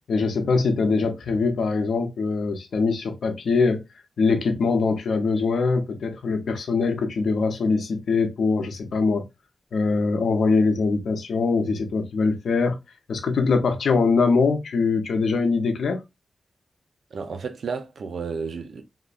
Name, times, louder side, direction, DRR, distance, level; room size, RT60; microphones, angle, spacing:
voice 1, 0.1-3.8 4.2-9.3 9.7-12.8 13.1-16.0, left 4 dB, 85° left, 0.6 m, -22 dB
voice 2, 17.1-18.8, right 5 dB, 75° right, 0.5 m, -32 dB
3.6 x 2.1 x 2.4 m
wide cardioid pair, 85°, 0 cm